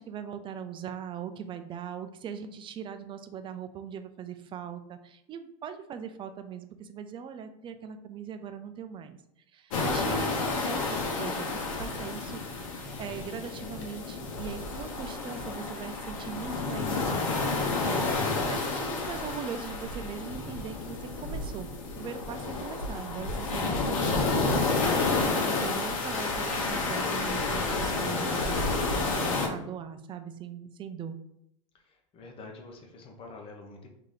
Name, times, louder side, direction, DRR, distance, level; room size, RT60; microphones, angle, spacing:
voice 1, 0.0-9.2 9.5-18.2 18.4-21.7 22.0-31.2, right 7 dB, 30° right, 9 dB, 0.4 m, -40 dB
sound 1, 9.7-29.5, left 3 dB, 75° left, 0.9 m, -30 dB
voice 2, 31.8-33.9, left 3 dB, 35° left, 1 dB, 0.9 m, -47 dB
3.1 x 2.8 x 3.8 m, 0.76 s
hypercardioid pair, 105°, 17 cm